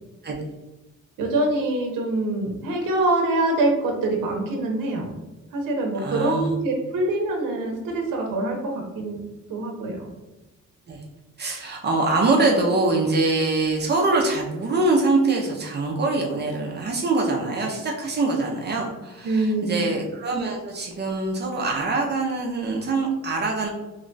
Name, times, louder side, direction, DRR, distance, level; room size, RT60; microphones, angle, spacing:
voice 1, 1.2-5.2 5.5-9.2 9.5-10.1 19.2-19.9, right 2 dB, 70° right, 1 dB, 0.8 m, -24 dB
voice 2, 6.0-6.5 10.9-11.0 11.4-23.7, right 3 dB, 30° right, -1 dB, 0.5 m, -24 dB
3.0 x 2.2 x 3.8 m, 1.1 s
cardioid pair, 150°, 33 cm